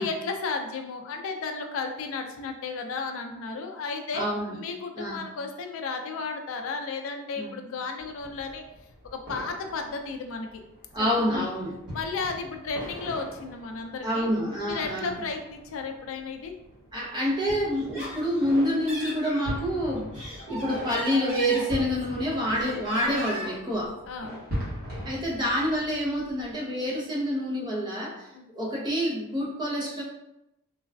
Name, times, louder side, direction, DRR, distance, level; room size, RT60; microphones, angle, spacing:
voice 1, 0.0-8.6 9.1-10.5 11.3-11.5 11.9-14.3 14.6-16.6 24.1-24.4 28.3-28.5, left 4 dB, 65° left, 5 dB, 0.4 m, -33 dB
voice 2, 4.1-4.6 4.9-5.3 7.4-7.6 10.9-11.8 14.0-15.2 16.9-24.0 25.0-28.3 28.5-30.0, equal, 20° right, -3 dB, 0.6 m, -27 dB
sound 1, 8.0-26.5, equal, 45° right, 1.1 m, -41 dB
Laughter, 17.7-19.4 20.0-22.2 22.5-23.7, equal, 75° right, 1.4 m, -37 dB
3.3 x 2.3 x 2.3 m, 0.88 s
head